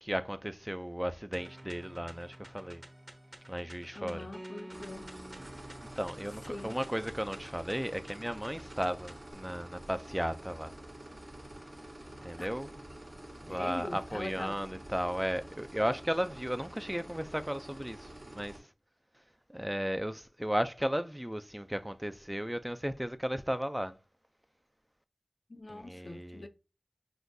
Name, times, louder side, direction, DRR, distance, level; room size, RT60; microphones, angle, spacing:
voice 1, 0.0-2.8 3.5-4.3 6.0-10.7 12.2-12.7 13.4-18.6 19.5-23.9 25.7-26.5, equal, 10° right, 0.3 m, -35 dB
sound 1, 1.3-9.3, right 1 dB, 30° right, 0.8 m, -50 dB
voice 2, 3.9-5.1 6.5-6.8 12.4-12.5 13.5-14.6 25.5-26.5, left 2 dB, 60° left, 0.5 m, -42 dB
sound 2, 4.7-18.6, right 1 dB, 55° right, 1.3 m, -48 dB
5.8 x 2.6 x 2.6 m
wide cardioid pair, 60°, 0 cm